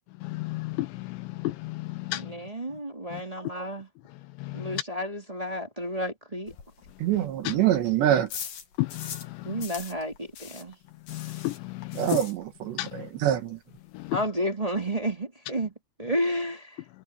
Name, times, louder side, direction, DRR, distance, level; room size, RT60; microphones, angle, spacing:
voice 1, 0.2-2.4 3.1-3.2 4.4-4.8 7.4-7.6 8.8-9.6 11.1-12.2 12.8-13.1 13.9-14.2, left 18 dB, 80° left, 3.0 m, -33 dB
voice 2, 2.1-3.9 4.5-6.5 9.4-10.8 14.1-15.7 16.0-16.8, equal, 10° right, 1.8 m, -31 dB
sound 1, 6.5-9.3 9.6-12.8 13.1-13.2 13.5-13.6 13.8-14.2, left 8 dB, 55° left, 3.6 m, -42 dB
voice 3, 7.0-8.3 11.9-13.6, right 11 dB, 70° right, 4.0 m, -25 dB
omnidirectional pair, 5.3 m